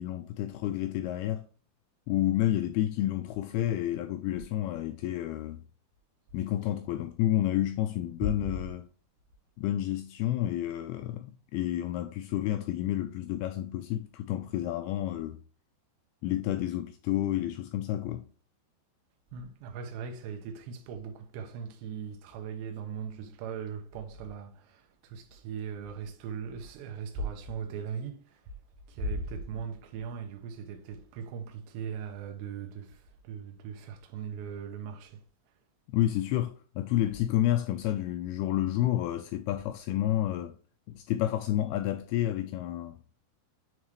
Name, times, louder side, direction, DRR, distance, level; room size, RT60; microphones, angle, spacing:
voice 1, 0.0-1.5 2.1-5.6 6.3-8.9 9.6-15.4 16.2-18.3 35.9-40.6 40.9-43.0, left 13 dB, 90° left, 2.2 m, -30 dB
voice 2, 19.3-28.4 28.9-35.2, right 5 dB, 80° right, 3.1 m, -39 dB
9.3 x 3.7 x 3.1 m
omnidirectional pair, 5.0 m